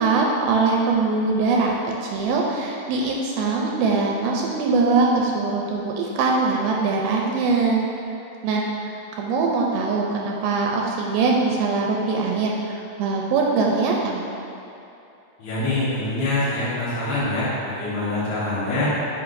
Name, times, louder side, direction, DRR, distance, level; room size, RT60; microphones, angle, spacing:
voice 1, 0.0-7.8 8.4-14.2, right 4 dB, 80° right, -1 dB, 2.4 m, -22 dB
voice 2, 15.4-19.0, left 2 dB, 80° left, -11 dB, 3.7 m, -24 dB
8.7 x 5.9 x 2.6 m, 2.8 s
omnidirectional pair, 4.5 m